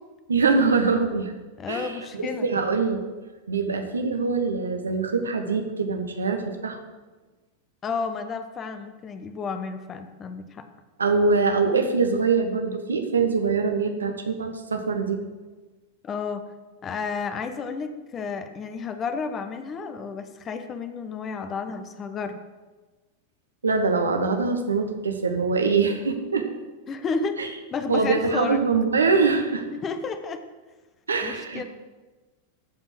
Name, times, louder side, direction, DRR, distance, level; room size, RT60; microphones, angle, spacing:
voice 1, 0.3-1.3 1.7-3.0 3.5-6.8 11.0-15.2 23.6-26.5 27.4-27.5 27.9-29.7 31.1-31.6, right 4 dB, 75° right, 6 dB, 1.3 m, -23 dB
voice 2, 1.6-2.5 7.8-10.7 16.0-16.4 16.8-22.4 26.9-28.6 29.7-30.4 31.2-31.6, left 5 dB, 25° left, 8 dB, 1.0 m, -31 dB
14.0 x 5.6 x 6.1 m, 1.2 s
figure-of-eight pair, 90°, 0 cm